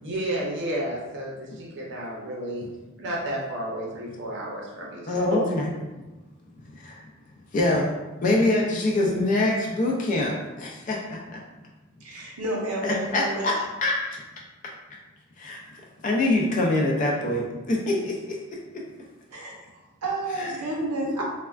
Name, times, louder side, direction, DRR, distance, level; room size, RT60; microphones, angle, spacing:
voice 1, 0.0-2.6 3.0-5.4, right 1 dB, 50° right, -4 dB, 0.6 m, -31 dB
voice 2, 5.1-5.7 6.8-7.0 7.5-7.9 8.2-11.2 12.8-13.6 13.8-14.2 15.4-15.6 16.0-18.6 20.4-20.5, left 2 dB, 35° left, -1 dB, 0.3 m, -24 dB
voice 3, 12.0-13.5 19.3-19.6 20.0-21.2, right 2 dB, 90° right, -2 dB, 0.7 m, -30 dB
3.3 x 2.1 x 2.3 m, 1.1 s
head